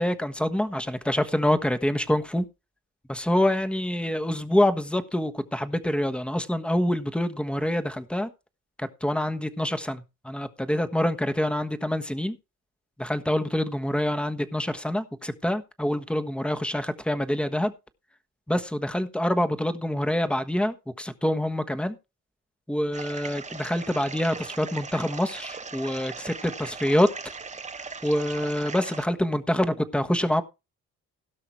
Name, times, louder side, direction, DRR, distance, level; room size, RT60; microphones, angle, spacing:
voice 1, 0.0-2.5 3.1-8.3 8.8-12.4 13.0-17.7 18.5-22.0 22.7-27.1 28.0-30.4, left 1 dB, 5° left, 1.3 m, -26 dB
sound 1, 22.9-29.1, right 4 dB, 25° right, 0.9 m, -39 dB
17.0 x 5.7 x 4.6 m
cardioid pair, 90°, 30 cm